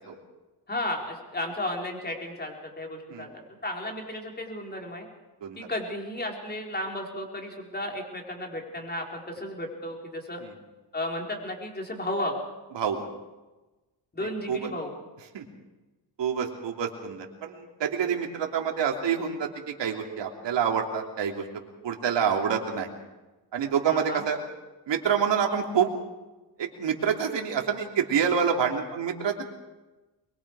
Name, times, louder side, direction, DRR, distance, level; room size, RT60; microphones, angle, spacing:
voice 1, 0.7-5.1 5.6-10.4 10.9-12.4 14.1-14.9 23.9-24.2, left 1 dB, 20° left, 1 dB, 4.5 m, -34 dB
voice 2, 12.7-13.0 14.2-14.7 15.3-15.4 16.2-21.4 21.8-22.9 23.5-24.4 24.9-25.9 26.6-29.4, right 7 dB, 70° right, 2 dB, 3.3 m, -27 dB
23.5 x 22.5 x 4.9 m, 1.1 s
cardioid pair, 110°, 45 cm